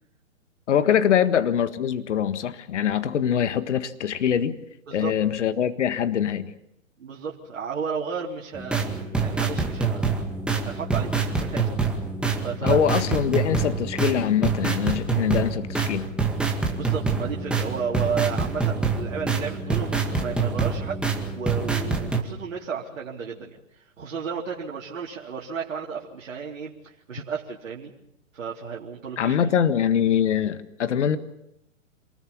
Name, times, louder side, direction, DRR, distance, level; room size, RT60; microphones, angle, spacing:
voice 1, 0.7-4.6 4.9-6.5 12.6-16.1 29.2-31.2, left 9 dB, 60° left, 10 dB, 1.7 m, -23 dB
voice 2, 7.0-10.2 10.6-11.7 12.4-13.0 16.7-21.0 21.3-27.9 28.3-29.5, right 6 dB, 70° right, -3 dB, 3.8 m, -33 dB
sound 1, 8.5-22.2, right 4 dB, ahead, 2.1 m, -26 dB
28.0 x 20.0 x 7.2 m, 0.80 s
hypercardioid pair, 135°, 39 cm